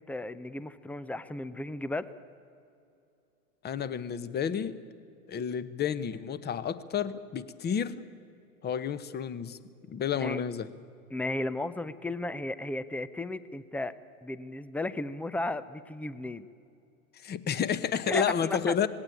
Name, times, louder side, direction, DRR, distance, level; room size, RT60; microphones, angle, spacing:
voice 1, 0.0-2.1 10.2-10.4 11.1-13.9 14.2-16.5 18.1-18.7, left 2 dB, 5° left, 16 dB, 0.5 m, -34 dB
voice 2, 3.6-4.8 5.3-8.0 8.6-9.6 9.9-10.7 17.1-18.9, left 7 dB, 25° left, 15 dB, 1.0 m, -31 dB
19.0 x 17.5 x 8.9 m, 2.5 s
hypercardioid pair, 100°, 44 cm